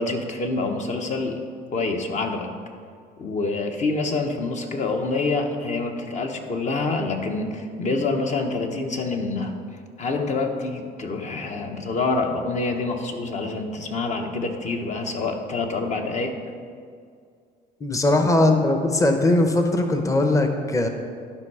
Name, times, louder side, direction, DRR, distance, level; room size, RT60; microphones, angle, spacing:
voice 1, 0.0-1.4 1.7-2.5 3.2-9.5 10.0-16.4, left 3 dB, 45° left, 4 dB, 1.1 m, -26 dB
voice 2, 17.8-20.9, left 2 dB, 20° left, 5 dB, 0.9 m, -20 dB
12.0 x 5.6 x 4.8 m, 2.2 s
cardioid pair, 110°, 17 cm